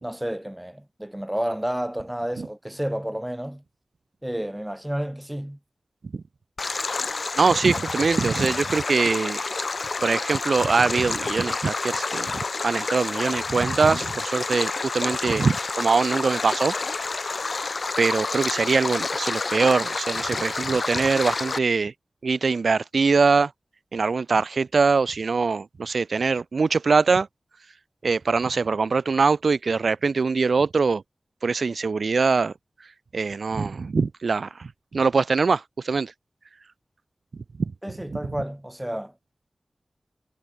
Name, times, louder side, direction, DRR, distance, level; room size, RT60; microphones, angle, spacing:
voice 1, 0.0-3.6 4.2-5.6 37.8-39.1, equal, 10° right, 2.3 m, -30 dB
Stream, 6.6-21.6, left 3 dB, 70° left, 2.3 m, -29 dB
voice 2, 7.4-9.5 10.0-16.7 17.0-17.4 18.0-21.9 22.2-23.5 23.9-27.3 28.0-31.0 31.4-32.5 33.1-36.1 37.6-37.7, right 4 dB, 85° right, 0.5 m, -23 dB
cardioid pair, 45°, 0 cm